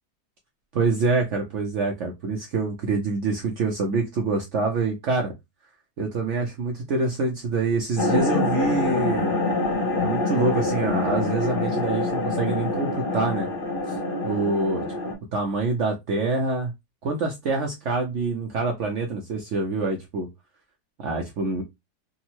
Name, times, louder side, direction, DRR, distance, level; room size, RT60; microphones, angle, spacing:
voice 1, 0.7-5.3 6.0-9.3 10.0-13.5 14.2-14.8 15.3-16.7 17.0-20.3 21.0-21.6, right 3 dB, 65° right, 0.7 m, -26 dB
sound 1, 8.0-15.1, left 2 dB, 50° left, 0.7 m, -25 dB
3.5 x 2.0 x 2.8 m
omnidirectional pair, 1.8 m